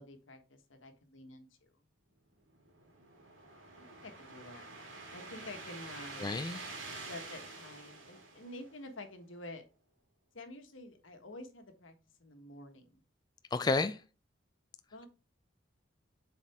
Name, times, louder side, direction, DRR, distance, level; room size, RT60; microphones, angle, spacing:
voice 1, 0.0-1.7 3.8-4.6 5.1-6.3 7.0-9.6 10.3-11.9 12.2-13.0 14.9-15.1, left 2 dB, 90° left, 1.4 m, -49 dB
sound 1, 2.5-9.0, right 3 dB, 85° right, 2.3 m, -48 dB
voice 2, 6.2-6.6 13.5-14.0, left 3 dB, 20° left, 0.3 m, -30 dB
7.4 x 4.2 x 3.5 m
head